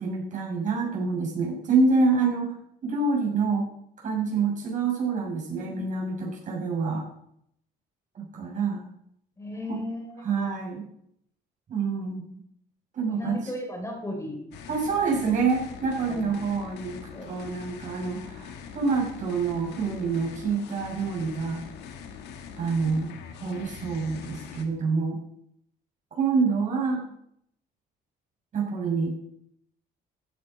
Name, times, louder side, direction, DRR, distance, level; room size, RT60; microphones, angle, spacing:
voice 1, 0.0-2.5 2.8-3.7 4.0-7.0 8.1-8.9 9.7-9.8 10.2-10.9 11.7-12.4 12.9-13.4 14.7-21.6 22.6-23.1 23.4-25.2 26.1-27.0 28.5-29.2, right 4 dB, 50° right, -2 dB, 6.6 m, -27 dB
voice 2, 9.4-10.3 13.1-14.4 16.1-16.3 17.1-17.3 22.8-23.1 27.0-27.1, left 1 dB, 15° left, 2 dB, 3.6 m, -36 dB
sound 1, 14.5-24.7, left 7 dB, 85° left, 1.8 m, -43 dB
15.0 x 8.4 x 5.3 m, 0.71 s
cardioid pair, 110°, 17 cm